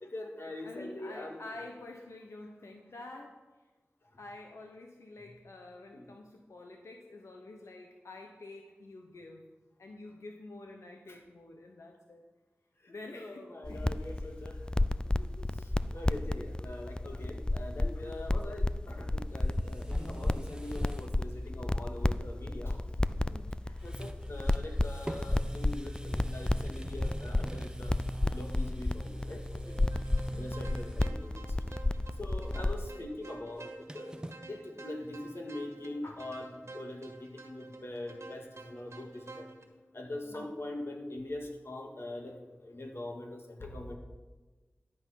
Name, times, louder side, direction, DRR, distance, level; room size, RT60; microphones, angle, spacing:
voice 1, 0.0-1.4 5.9-6.1 11.1-11.2 12.8-14.8 15.6-22.8 23.7-29.9 30.4-31.6 32.2-34.2 34.5-39.5 39.9-44.0, left 1 dB, 60° left, 2 dB, 1.9 m, -43 dB
voice 2, 0.6-3.4 4.2-9.5 9.8-12.2 12.9-14.3 15.2-15.5 16.8-16.9 17.3-17.4 18.0-18.4 23.2-23.6 30.2-30.6 40.2-40.5, left 2 dB, 90° left, 2 dB, 1.0 m, -49 dB
sound 1, 13.6-32.9, left 2 dB, 20° left, 0.4 m, -32 dB
sound 2, 19.4-21.2 21.5-21.6 23.3-23.5 23.8-31.2 31.6-32.0 32.3-34.4, right 1 dB, 15° right, 0.8 m, -44 dB
sound 3, 29.9-39.6, right 3 dB, 75° right, 1.6 m, -50 dB
11.5 x 7.7 x 5.8 m, 1.2 s
wide cardioid pair, 50°, 5 cm